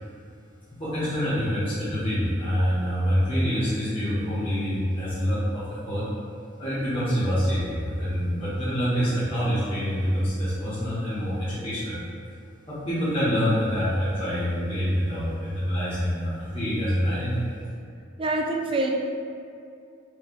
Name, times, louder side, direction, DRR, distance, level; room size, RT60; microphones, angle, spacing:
voice 1, 0.8-6.0 6.6-12.0 12.7-17.5, equal, 25° left, -13 dB, 1.1 m, -26 dB
voice 2, 18.2-18.9, right 2 dB, 25° right, 1 dB, 0.3 m, -25 dB
4.6 x 3.0 x 3.0 m, 2.5 s
head